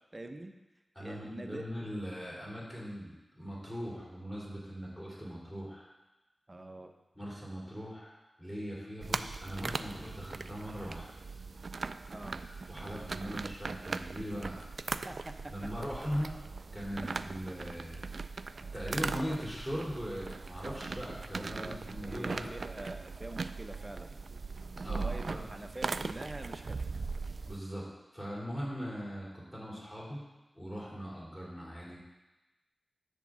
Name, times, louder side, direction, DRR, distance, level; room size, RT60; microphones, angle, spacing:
voice 1, 0.1-0.5 1.0-1.7 6.5-6.9 12.1-12.4 15.1-15.5 17.0-17.2 21.5-21.8 22.1-24.2 24.8-25.2 25.5-26.8, right 1 dB, 25° right, 5 dB, 0.7 m, -44 dB
voice 2, 0.9-5.9 7.1-8.1 8.4-11.1 12.4-14.6 15.5-16.3 16.7-18.0 18.7-22.5 24.8-25.4 27.5-27.9 28.1-30.2 30.5-32.0, equal, 10° left, -6 dB, 3.1 m, -40 dB
sound 1, 9.0-27.6, right 4 dB, 60° right, 0.3 m, -39 dB
10.5 x 3.7 x 7.3 m, 1.1 s
wide cardioid pair, 110°, 0 cm